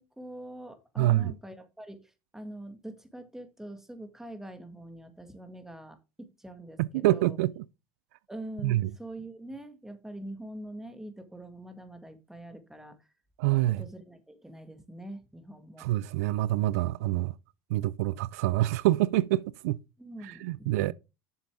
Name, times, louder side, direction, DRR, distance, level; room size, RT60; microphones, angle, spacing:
voice 1, 0.0-7.4 8.3-13.0 13.8-15.9 20.0-20.9, right 1 dB, 5° right, 1.7 m, -44 dB
voice 2, 1.0-1.3 6.8-7.6 8.6-8.9 13.4-13.8 15.8-17.3 17.7-19.8 20.2-20.9, right 16 dB, 85° right, 0.4 m, -26 dB
7.9 x 6.9 x 3.6 m
supercardioid pair, 95°, 8 cm